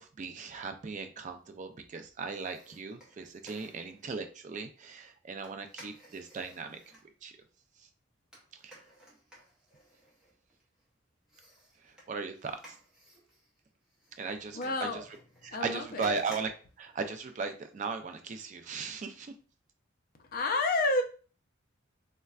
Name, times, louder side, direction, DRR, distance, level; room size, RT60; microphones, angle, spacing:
voice 1, 0.0-6.8 7.2-7.3 7.8-7.9 8.6-8.8 11.8-12.8 14.2-15.0 15.4-16.5 16.8-19.3, right 4 dB, 35° right, 7 dB, 0.3 m, -37 dB
sound 1, 2.3-4.1 5.4-7.1 8.3-10.8 11.3-17.5 17.9-18.0, right 1 dB, 5° right, 0.7 m, -56 dB
voice 2, 14.5-15.0 15.5-16.1 20.3-21.0, left 2 dB, 45° left, 5 dB, 0.5 m, -29 dB
4.2 x 2.2 x 2.3 m, 0.38 s
head